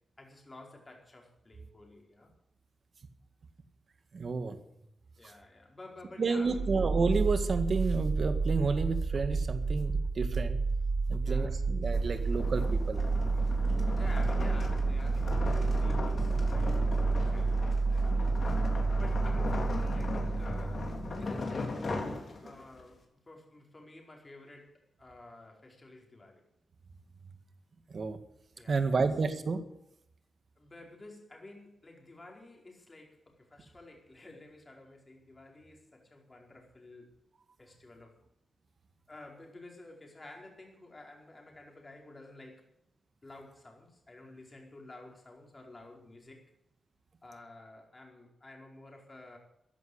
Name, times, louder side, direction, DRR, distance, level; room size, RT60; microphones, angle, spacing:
voice 1, 0.2-2.3 5.2-6.8 11.2-11.6 13.9-18.6 19.0-21.9 22.4-26.4 28.5-29.0 30.6-37.2 37.6-38.2 39.1-42.7 43.2-46.5 47.2-49.4, left 2 dB, 25° left, 1 dB, 4.7 m, -52 dB
voice 2, 4.1-4.6 6.2-10.6 11.1-13.0 27.9-28.2 28.7-29.6, right 4 dB, 50° right, 9 dB, 2.0 m, -30 dB
sound 1, 6.4-21.2, right 3 dB, 75° right, 1.5 m, -30 dB
sound 2, 11.8-22.8, left 3 dB, 50° left, 3.5 m, -38 dB
15.0 x 11.0 x 8.1 m, 0.79 s
wide cardioid pair, 120°, 0 cm